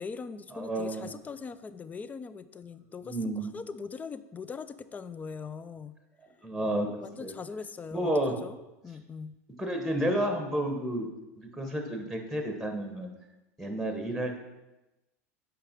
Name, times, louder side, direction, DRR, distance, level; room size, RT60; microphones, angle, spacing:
voice 1, 0.0-6.0 6.9-8.1 8.4-8.6 8.8-9.4, left 5 dB, 20° left, 14 dB, 0.4 m, -41 dB
voice 2, 0.5-1.1 3.0-3.6 6.4-6.9 7.2-7.4 7.9-8.4 9.6-11.1 11.4-13.1 13.6-14.4, right 1 dB, ahead, 4 dB, 1.1 m, -31 dB
5.7 x 4.9 x 5.2 m, 1.0 s
hypercardioid pair, 100°, 8 cm